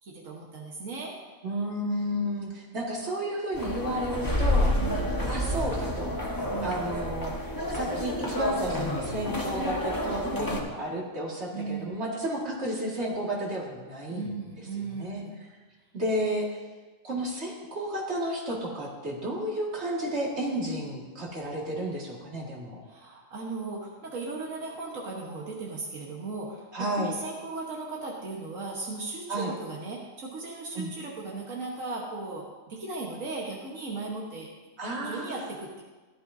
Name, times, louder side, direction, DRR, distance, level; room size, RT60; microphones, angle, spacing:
voice 1, 0.0-1.2 4.7-5.3 6.5-6.8 10.3-10.7 11.5-12.0 14.1-15.4 22.9-26.7 27.0-34.5 35.0-35.8, right 3 dB, 90° right, -3 dB, 1.7 m, -37 dB
voice 2, 1.4-4.7 5.3-6.1 6.6-7.3 7.7-14.4 14.8-15.2 15.9-16.6 17.0-22.8 26.7-27.2 29.3-29.5 30.7-30.9 34.8-35.5, right 1 dB, 60° right, -3 dB, 2.4 m, -32 dB
sound 1, 3.5-10.6, left 1 dB, 15° left, 1.1 m, -29 dB
15.0 x 11.5 x 2.7 m, 1.3 s
omnidirectional pair, 1.3 m